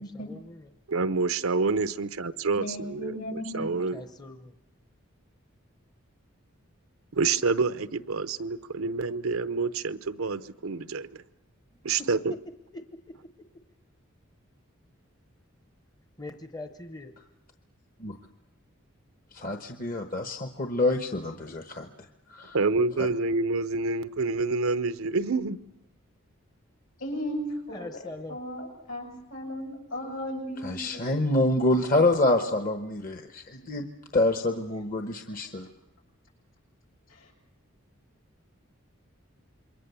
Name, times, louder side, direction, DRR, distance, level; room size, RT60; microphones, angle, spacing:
voice 1, 0.0-0.7 3.6-4.5 12.7-13.0 16.2-17.1 27.7-28.4, left 2 dB, 20° left, 7 dB, 0.8 m, -42 dB
voice 2, 0.9-4.0 7.1-11.2 11.8-12.3 22.5-25.6, right 4 dB, 85° right, 13 dB, 0.8 m, -28 dB
voice 3, 2.6-3.9 27.0-31.1 35.3-35.4 37.1-37.3, equal, 75° left, 1 dB, 7.9 m, -36 dB
voice 4, 19.3-21.9 22.3-22.6 23.0-23.1 30.6-33.9 34.1-35.7, left 2 dB, 40° left, 5 dB, 1.1 m, -26 dB
27.5 x 22.5 x 7.0 m, 0.96 s
head